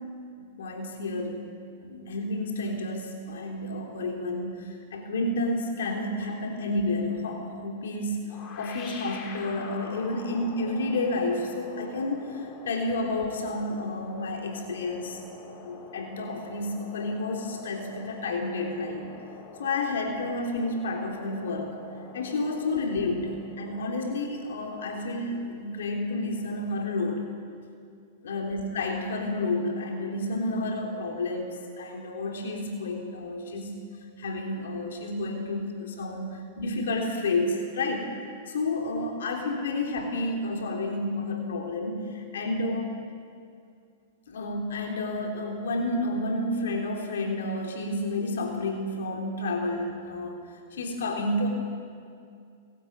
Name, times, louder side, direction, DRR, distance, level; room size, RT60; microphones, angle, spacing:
voice 1, 0.4-1.4 1.8-8.3 8.6-15.2 15.5-19.1 19.6-21.8 22.1-27.3 28.2-33.8 34.2-38.1 38.5-42.9 44.3-51.5, left 2 dB, 80° left, 1 dB, 3.5 m, -30 dB
sound 1, 8.3-27.1, left 4 dB, 35° left, 3.6 m, -47 dB
28.5 x 13.0 x 8.9 m, 2.3 s
hypercardioid pair, 130°, 0 cm